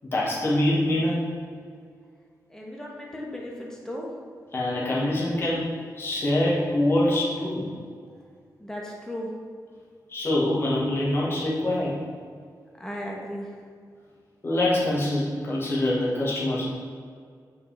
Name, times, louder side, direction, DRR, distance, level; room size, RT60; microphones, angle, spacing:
voice 1, 0.0-1.3 4.5-7.7 10.1-11.9 14.4-16.8, left 1 dB, 35° left, -5 dB, 1.6 m, -25 dB
voice 2, 2.5-4.1 8.6-9.3 12.8-13.5, equal, 10° left, -3 dB, 1.2 m, -36 dB
8.2 x 5.0 x 3.4 m, 2.1 s
wide cardioid pair, 170°, 7 cm